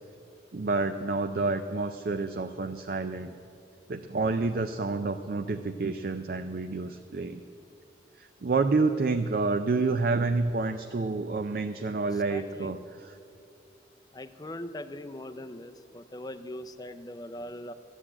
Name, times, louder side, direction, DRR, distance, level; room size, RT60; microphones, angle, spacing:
voice 1, 0.5-3.3 3.9-7.4 8.2-13.2, right 3 dB, 50° right, 8 dB, 0.4 m, -29 dB
voice 2, 12.1-12.7 14.1-17.7, left 1 dB, 20° left, 9 dB, 0.5 m, -41 dB
13.5 x 8.2 x 8.7 m, 2.7 s
head